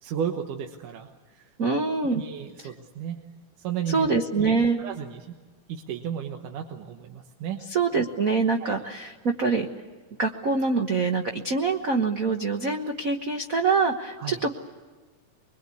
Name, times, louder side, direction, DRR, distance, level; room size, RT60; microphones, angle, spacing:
voice 1, 0.0-1.5 2.1-3.2 3.6-5.4 5.7-7.6 8.6-8.7 14.2-14.4, right 8 dB, 80° right, 4 dB, 2.8 m, -34 dB
voice 2, 1.6-2.2 3.9-4.8 7.7-9.7 10.2-14.5, right 4 dB, 55° right, 3 dB, 0.9 m, -25 dB
25.5 x 23.0 x 8.5 m, 1.3 s
omnidirectional pair, 3.6 m